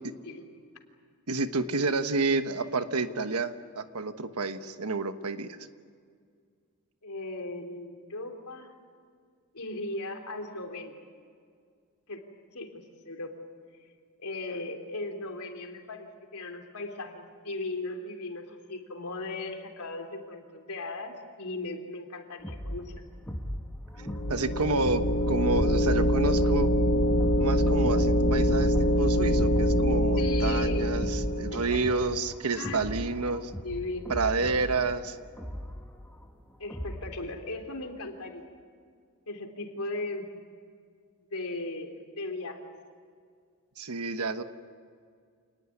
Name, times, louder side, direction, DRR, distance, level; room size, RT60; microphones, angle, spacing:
voice 1, 1.3-5.6 24.3-26.7 27.4-33.5 34.1-35.2 43.8-44.4, right 3 dB, 80° right, 9 dB, 1.3 m, -29 dB
voice 2, 7.0-8.7 9.5-11.0 12.1-12.2 12.5-13.4 14.2-23.0 30.2-31.0 31.5-31.8 32.5-32.8 33.6-34.6 36.6-38.4 39.3-40.3 41.3-42.7, left 2 dB, 80° left, 3 dB, 3.4 m, -37 dB
sound 1, 22.4-37.2, equal, 10° left, 1.7 m, -39 dB
sound 2, 24.0-31.7, equal, 45° left, 1.8 m, -24 dB
28.0 x 19.5 x 9.9 m, 2.1 s
head